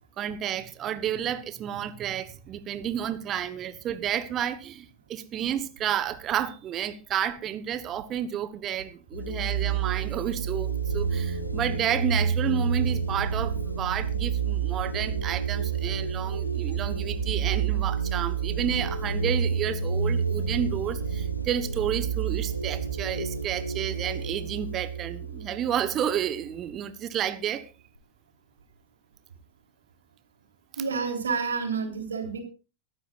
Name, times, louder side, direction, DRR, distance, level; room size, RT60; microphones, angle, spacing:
voice 1, 0.2-27.7, right 10 dB, 30° right, 13 dB, 1.3 m, -31 dB
sound 1, 9.1-26.5, right 6 dB, 85° left, 1.6 m, -29 dB
voice 2, 30.8-32.4, right 5 dB, 70° right, 4 dB, 3.6 m, -29 dB
23.0 x 12.5 x 2.5 m, 0.33 s
figure-of-eight pair, 90°, 0 cm